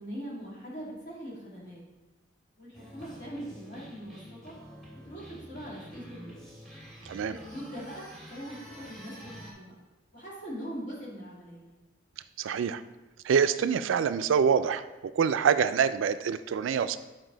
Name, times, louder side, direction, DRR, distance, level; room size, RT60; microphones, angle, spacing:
voice 1, 0.0-1.8 2.6-4.5 4.9-6.4 7.2-9.8 10.1-11.7, equal, 40° left, -6 dB, 2.3 m, -42 dB
sound 1, 2.7-9.5, equal, ahead, 1.8 m, -48 dB
voice 2, 7.1-7.4 12.4-12.8 13.2-14.8 15.1-17.0, right 7 dB, 80° right, 12 dB, 0.3 m, -25 dB
8.0 x 4.7 x 3.8 m, 1.1 s
head